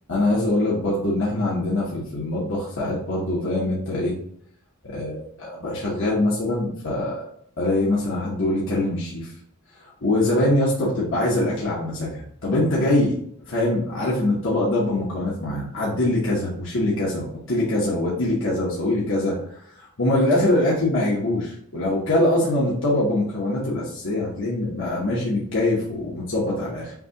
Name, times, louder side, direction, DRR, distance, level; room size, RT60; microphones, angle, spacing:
voice 1, 0.1-4.1 4.8-7.2 7.6-9.3 10.0-13.2 13.5-19.3 20.0-26.9, left 1 dB, 65° left, -6 dB, 1.1 m, -23 dB
5.8 x 2.4 x 2.9 m, 0.66 s
head